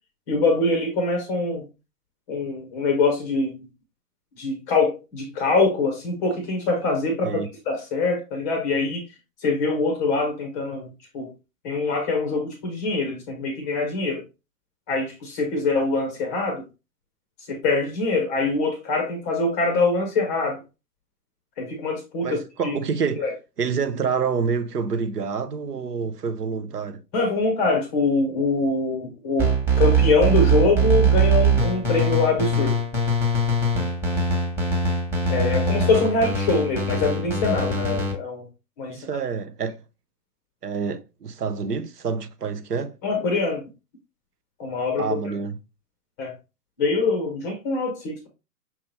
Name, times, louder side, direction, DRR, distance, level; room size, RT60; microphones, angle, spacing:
voice 1, 0.3-1.6 2.3-3.6 4.4-9.0 9.4-11.3 11.6-14.2 14.9-16.6 17.5-20.6 21.6-22.8 23.2-23.3 27.1-32.8 35.3-38.5 38.8-39.2 43.0-43.6 44.6-45.1 46.2-46.3 46.8-48.3, left 3 dB, 10° left, 0.5 m, -24 dB
voice 2, 22.2-23.2 23.6-27.0 34.0-34.5 38.9-39.8 40.6-43.0 45.0-45.6, right 5 dB, 90° right, 0.7 m, -28 dB
sound 1, 29.4-38.1, right 3 dB, 5° right, 1.0 m, -22 dB
5.8 x 2.8 x 3.1 m
figure-of-eight pair, 130°, 46 cm